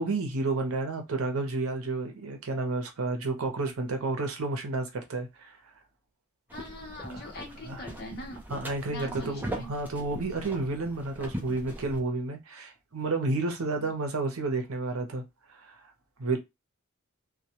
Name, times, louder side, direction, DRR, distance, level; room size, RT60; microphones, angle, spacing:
voice 1, 0.0-5.5 7.6-7.8 8.5-15.2 15.6-15.8 16.2-16.4, right 3 dB, 70° right, 0.7 m, -31 dB
voice 2, 6.5-8.4 8.9-9.7, equal, 50° left, 0.8 m, -42 dB
sound 1, 6.5-12.0, equal, 10° right, 0.5 m, -40 dB
2.2 x 2.2 x 2.8 m
head